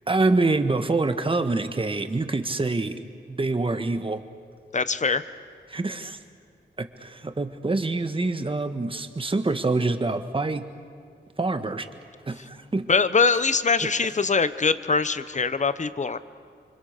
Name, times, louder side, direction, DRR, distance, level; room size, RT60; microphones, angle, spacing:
voice 1, 0.1-3.0 3.3-4.2 5.7-6.2 6.8-10.6 11.4-11.9 12.3-12.9, right 3 dB, 30° right, 8 dB, 1.6 m, -25 dB
voice 2, 4.7-5.2 12.9-16.2, left 4 dB, 40° left, 13 dB, 1.0 m, -23 dB
28.5 x 25.0 x 6.8 m, 2.1 s
wide cardioid pair, 85°, 19 cm